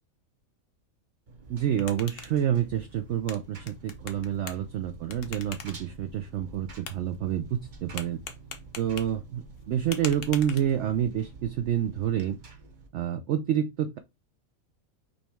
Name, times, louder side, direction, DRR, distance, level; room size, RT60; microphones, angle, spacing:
Engine, 1.3-12.9, right 4 dB, 40° right, 0.9 m, -48 dB
sound 1, 1.4-11.1, left 7 dB, 65° left, 1.1 m, -45 dB
voice 1, 1.5-8.2 8.8-12.4 12.9-14.0, right 10 dB, 65° right, 0.7 m, -28 dB
5.2 x 3.0 x 3.4 m
omnidirectional pair, 1.5 m